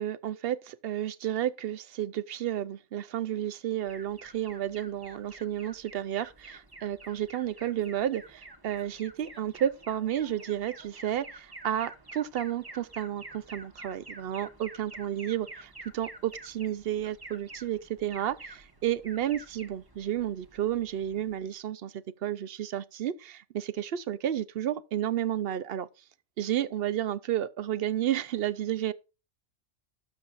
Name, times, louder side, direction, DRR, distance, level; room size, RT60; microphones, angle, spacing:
voice 1, 0.0-25.9 26.4-28.9, right 11 dB, 65° right, 0.7 m, -32 dB
Alarm, 3.9-21.5, right 2 dB, 20° right, 1.1 m, -49 dB
12.0 x 7.2 x 2.4 m
omnidirectional pair, 1.2 m